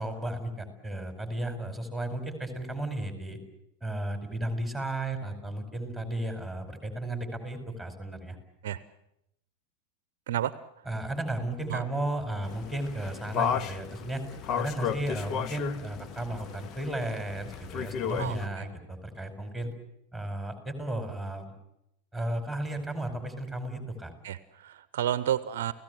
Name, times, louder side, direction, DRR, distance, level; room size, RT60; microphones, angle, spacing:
voice 1, 0.0-3.4 3.8-8.4 10.9-14.2 14.6-19.7 20.1-21.5 22.1-24.1, right 1 dB, 5° left, 6 dB, 4.9 m, -34 dB
sound 1, 12.4-18.5, left 8 dB, 35° left, 0.9 m, -34 dB
voice 2, 18.2-18.7 24.2-25.7, right 11 dB, 55° right, 16 dB, 0.8 m, -31 dB
29.5 x 17.0 x 8.0 m, 0.82 s
figure-of-eight pair, 90°, 0 cm